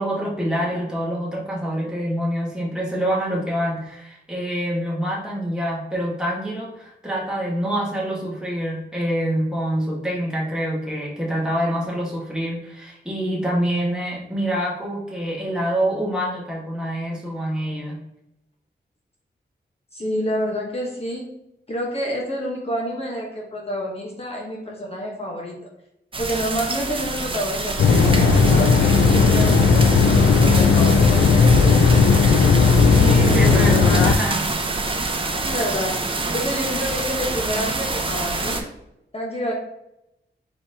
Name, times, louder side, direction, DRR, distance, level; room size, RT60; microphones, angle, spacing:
voice 1, 0.0-18.0 32.9-34.4, equal, 5° right, -4 dB, 1.2 m, -26 dB
voice 2, 19.9-21.3 21.7-25.6 26.2-31.2 31.6-32.0 35.4-38.7 39.1-39.5, equal, 35° left, -2 dB, 1.0 m, -28 dB
sound 1, 26.1-38.6, right 2 dB, 30° right, 0.6 m, -27 dB
sound 2, 27.8-34.1, left 4 dB, 85° left, 0.4 m, -15 dB
4.3 x 3.8 x 2.7 m, 0.85 s
wide cardioid pair, 90°, 18 cm